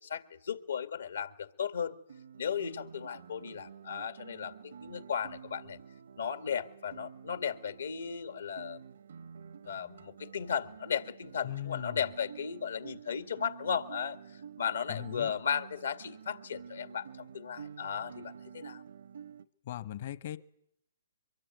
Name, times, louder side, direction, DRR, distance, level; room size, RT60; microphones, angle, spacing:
voice 1, 0.0-2.0 2.4-5.8 6.2-8.8 9.6-18.8, left 7 dB, 80° left, 10 dB, 2.2 m, -36 dB
Guitar, 2.1-19.5, right 7 dB, 75° right, 1.1 m, -50 dB
voice 2, 11.4-12.0 14.9-15.3 19.6-20.4, left 12 dB, 50° left, 15 dB, 1.1 m, -39 dB
23.5 x 22.5 x 9.4 m, 0.74 s
hypercardioid pair, 145°, 0 cm